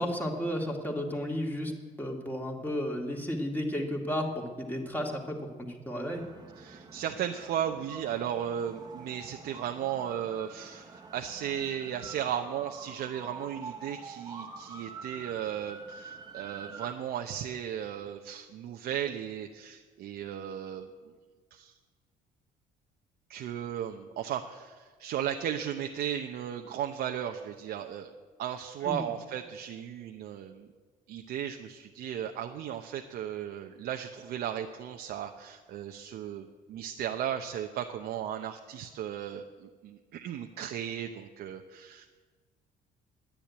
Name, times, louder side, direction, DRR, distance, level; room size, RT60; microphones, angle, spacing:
voice 1, 0.0-1.7 2.0-6.2 28.8-29.1, equal, 10° left, 0 dB, 2.3 m, -33 dB
sound 1, 6.1-16.9, right 4 dB, 25° right, 1.3 m, -46 dB
voice 2, 6.6-20.9 21.5-21.7 23.3-28.1 28.4-30.7 31.1-42.1, right 9 dB, 70° right, 4 dB, 0.8 m, -35 dB
10.5 x 10.0 x 9.6 m, 1.4 s
cardioid pair, 110°, 17 cm